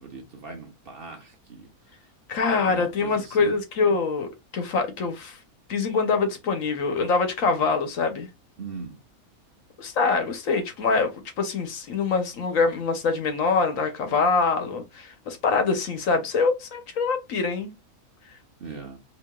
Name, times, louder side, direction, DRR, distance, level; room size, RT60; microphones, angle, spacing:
voice 1, 0.0-1.7 2.4-3.5 8.6-9.0 18.6-19.0, right 4 dB, 45° right, 0.9 m, -39 dB
voice 2, 2.3-5.4 5.7-8.3 9.8-11.1 11.4-17.7, left 4 dB, 65° left, 1.1 m, -24 dB
4.7 x 2.9 x 2.2 m
omnidirectional pair, 1.6 m